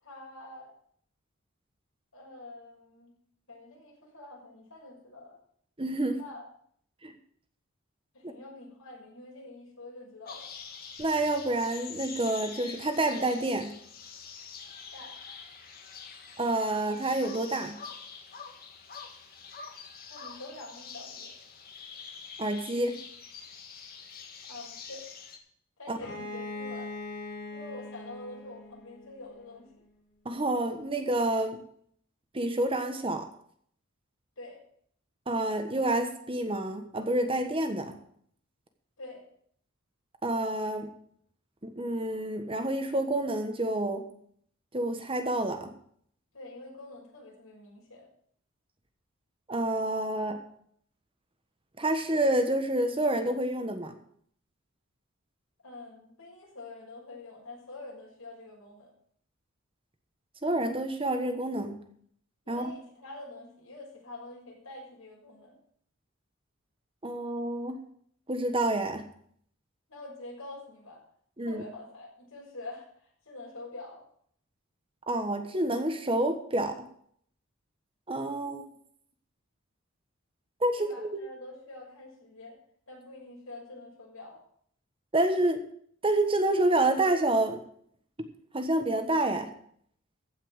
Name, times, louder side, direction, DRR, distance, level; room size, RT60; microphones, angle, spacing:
voice 1, 0.0-0.7 2.1-3.1 3.5-5.4 6.1-6.5 8.1-10.5 14.9-15.2 20.1-21.3 24.5-25.1 25.8-26.9 27.5-29.7 34.4-34.6 39.0-39.3 46.3-48.1 55.6-58.9 62.4-65.6 69.9-71.0 71.4-74.0 80.8-82.5 82.9-84.4, left 2 dB, 80° left, -2 dB, 6.1 m, -46 dB
voice 2, 5.8-6.2 7.0-7.1 11.0-13.8 16.4-17.8 22.4-23.0 25.9-26.0 30.2-31.6 32.3-33.3 35.3-38.0 40.2-40.9 41.6-44.1 44.7-45.7 49.5-50.4 51.8-54.0 60.4-61.8 62.5-62.7 67.0-67.8 68.3-69.1 71.4-71.6 75.1-76.9 78.1-78.6 80.6-81.1 85.1-85.6 86.0-87.6 88.5-89.5, right 1 dB, 25° right, 6 dB, 1.3 m, -28 dB
sound 1, 10.3-25.4, left 6 dB, 45° left, 1.7 m, -46 dB
Bowed string instrument, 26.0-29.6, left 2 dB, 65° left, 4.7 m, -41 dB
15.0 x 5.7 x 8.0 m, 0.63 s
head